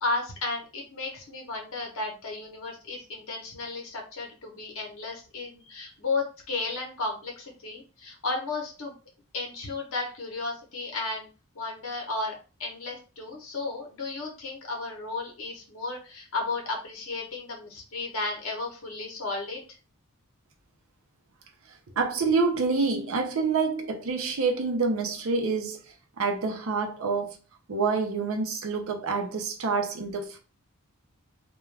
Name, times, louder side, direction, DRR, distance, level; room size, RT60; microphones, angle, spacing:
voice 1, 0.0-9.0 9.3-11.3 11.5-12.3 12.6-19.6, left 3 dB, 65° left, 0.8 m, -33 dB
voice 2, 21.7-27.4 27.7-30.4, right 4 dB, 70° right, 0.5 m, -27 dB
2.3 x 2.2 x 3.2 m
head